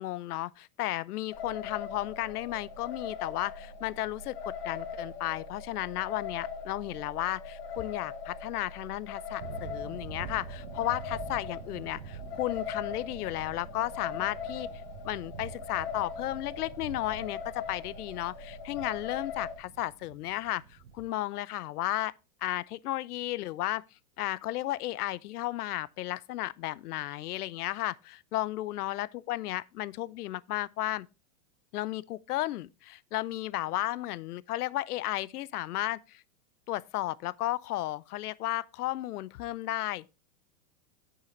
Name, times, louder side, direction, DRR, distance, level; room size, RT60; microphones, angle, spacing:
voice 1, 0.0-14.7 15.0-22.1 22.4-23.8 24.2-31.1 31.7-36.2 36.7-40.1, left 15 dB, 80° left, 0.6 m, -34 dB
sound 1, 1.3-19.5, left 6 dB, 40° left, 2.5 m, -40 dB
sound 2, 9.4-21.1, right 6 dB, 70° right, 1.2 m, -46 dB
8.5 x 5.8 x 3.9 m
supercardioid pair, 170°, 45 cm